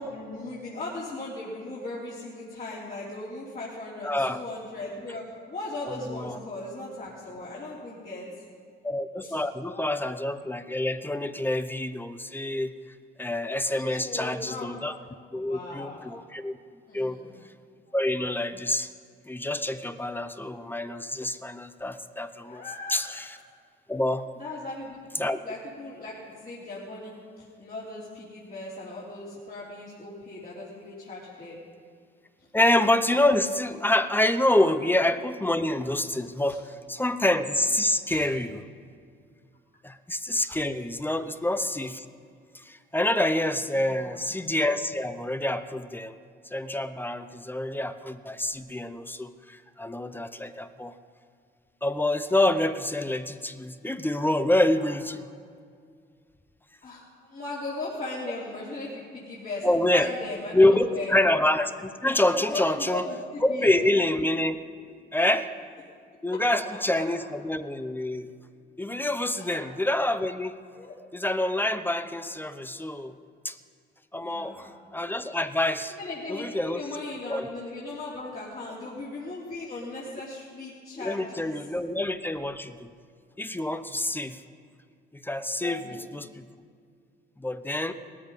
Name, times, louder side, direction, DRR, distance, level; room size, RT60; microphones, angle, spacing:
voice 1, 0.0-8.3 9.2-9.4 9.7-9.9 13.9-14.7 15.3-16.0 16.9-17.3 22.5-23.0 24.4-25.1 25.4-26.2 26.4-31.6 36.5-36.6 38.1-38.3 43.7-44.2 54.8-54.9 56.8-61.1 62.5-63.9 66.3-66.4 66.7-67.3 69.4-69.6 70.7-71.0 74.2-74.7 75.9-81.6 85.7-86.0 87.8-87.9, left 2 dB, 45° left, -7 dB, 3.1 m, -38 dB
voice 2, 4.0-4.4 5.9-6.4 8.8-12.7 13.2-15.0 15.3-16.5 16.9-17.2 17.9-18.9 19.3-22.6 22.9-23.4 23.9-24.2 25.2-25.4 32.5-36.6 36.9-38.6 39.8-42.0 42.7-46.2 46.5-50.9 51.8-55.2 59.6-60.1 60.5-63.0 63.4-64.6 65.1-65.5 66.2-68.3 68.8-70.6 71.1-73.1 73.4-73.6 74.1-74.5 74.9-75.9 76.3-76.8 77.3-77.5 81.0-82.9 83.4-84.4 85.2-86.3 87.4-87.9, left 1 dB, 10° left, 11 dB, 0.7 m, -26 dB
18.5 x 13.5 x 5.2 m, 2.2 s
cardioid pair, 90°, 20 cm